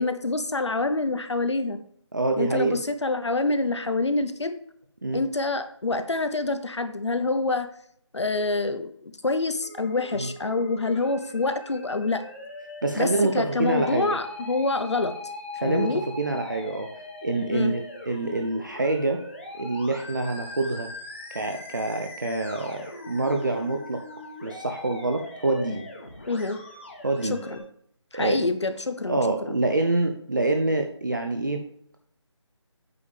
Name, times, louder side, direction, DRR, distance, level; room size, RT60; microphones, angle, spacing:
voice 1, 0.0-1.8 2.4-4.6 5.1-7.7 8.1-12.2 13.0-13.1 13.3-15.1 15.6-16.0 17.5-17.8 26.3-26.6 27.3-27.6 28.1-29.5, left 3 dB, 65° left, 9 dB, 0.8 m, -26 dB
voice 2, 2.1-2.8 5.0-5.2 10.2-10.3 12.8-14.2 15.6-16.9 17.2-19.2 19.6-20.9 21.3-24.0 24.4-25.9 27.0-27.4 28.1-28.5 29.1-31.6, right 2 dB, 40° right, 4 dB, 0.6 m, -26 dB
Musical instrument, 9.6-27.6, left 2 dB, 25° left, 1.3 m, -41 dB
8.5 x 3.5 x 6.7 m, 0.68 s
figure-of-eight pair, 180°, 16 cm